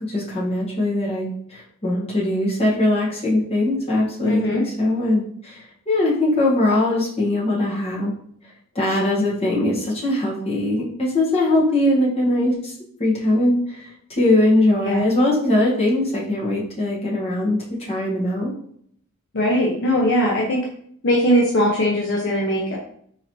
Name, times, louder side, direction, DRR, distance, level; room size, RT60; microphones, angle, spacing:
voice 1, 0.1-8.1 8.7-12.7 13.0-18.5, left 1 dB, 30° left, -5 dB, 1.1 m, -21 dB
voice 2, 4.2-4.6 14.8-15.0 19.3-20.6 21.0-22.8, equal, 50° left, -3 dB, 0.5 m, -20 dB
3.9 x 2.8 x 2.9 m, 0.64 s
head